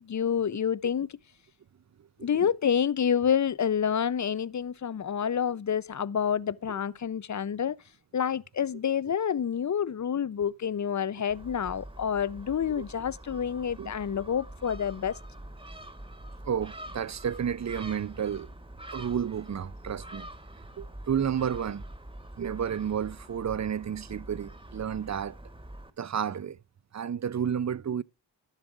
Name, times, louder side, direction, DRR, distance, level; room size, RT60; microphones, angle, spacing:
voice 1, 0.1-1.1 2.2-7.8 8.1-15.1, left 8 dB, 45° left, 0.5 m, -28 dB
voice 2, 2.2-2.5 6.7-6.8 12.8-12.9 13.8-13.9 16.5-18.5 18.9-20.3 20.8-21.8 22.4-25.4 26.0-26.6 26.9-28.0, right 8 dB, 45° right, 0.5 m, -31 dB
Gull seagull, 11.3-25.9, right 1 dB, 10° right, 1.0 m, -45 dB
12.0 x 7.4 x 4.8 m
wide cardioid pair, 70°, 42 cm